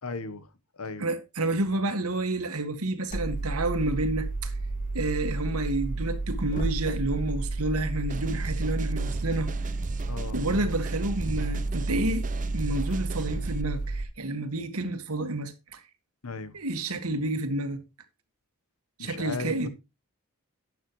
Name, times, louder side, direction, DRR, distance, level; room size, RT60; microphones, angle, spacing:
voice 1, 0.0-1.0 10.1-10.4 16.2-16.6 19.0-19.7, left 3 dB, 75° left, 1.1 m, -36 dB
voice 2, 1.0-4.5 4.9-9.5 10.3-12.3 12.5-15.8 16.5-17.8 19.0-19.7, right 2 dB, 80° right, 1.8 m, -29 dB
sound 1, 3.1-14.0, right 2 dB, 40° left, 2.5 m, -31 dB
sound 2, 8.1-13.6, right 3 dB, 35° right, 0.6 m, -41 dB
12.0 x 8.9 x 3.1 m
head